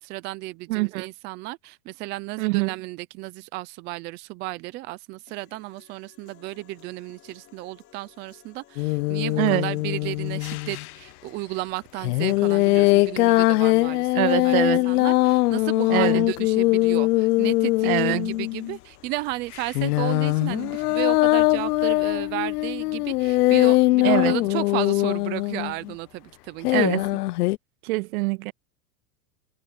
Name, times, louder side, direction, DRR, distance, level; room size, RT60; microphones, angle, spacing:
voice 1, 0.0-27.0, right 19 dB, 25° right, 0.5 m, -34 dB
voice 2, 0.7-1.1 2.4-2.7 9.4-9.6 14.1-14.9 15.9-16.3 17.8-18.4 24.0-24.3 26.7-27.2 27.8-28.5, right 20 dB, 70° right, 1.7 m, -24 dB
sound 1, 5.3-21.3, left 12 dB, 30° left, 5.4 m, -55 dB
sound 2, 8.8-10.9 12.0-18.8 19.5-25.9 26.6-27.6, left 19 dB, 85° left, 0.7 m, -21 dB
supercardioid pair, 160°, 45 cm